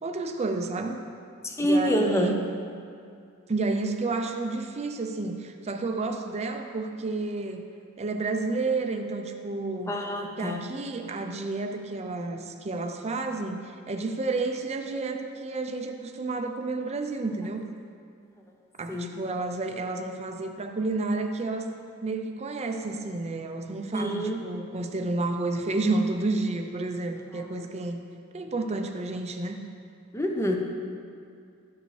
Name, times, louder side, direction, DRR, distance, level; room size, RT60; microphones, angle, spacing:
voice 1, 0.0-1.0 1.6-2.4 3.5-7.7 8.0-10.0 10.4-17.7 18.8-21.8 22.0-28.0 28.3-29.6, right 3 dB, 30° right, 4 dB, 0.5 m, -30 dB
voice 2, 1.4-2.3 9.9-10.6 18.9-19.1 23.9-24.4 30.1-30.6, equal, 10° left, 2 dB, 0.6 m, -26 dB
12.0 x 5.0 x 3.2 m, 2.3 s
head